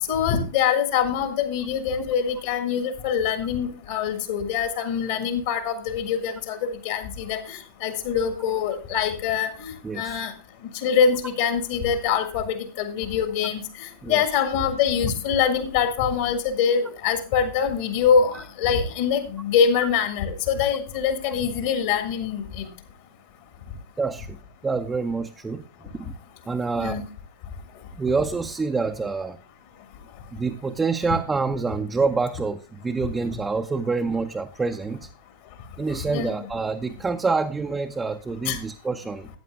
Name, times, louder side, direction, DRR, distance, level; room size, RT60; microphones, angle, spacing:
voice 1, 0.1-10.3 10.8-22.7 26.8-27.0 36.1-36.3 38.4-38.6, left 7 dB, 55° left, 7 dB, 1.7 m, -24 dB
voice 2, 9.8-10.2 14.0-14.2 18.3-18.4 24.0-24.4 24.6-25.6 25.9-26.1 26.5-27.0 27.9-29.4 30.3-35.1 35.8-39.3, right 4 dB, 15° right, 5 dB, 0.6 m, -27 dB
14.0 x 9.0 x 2.3 m, 0.35 s
figure-of-eight pair, 90°, 0 cm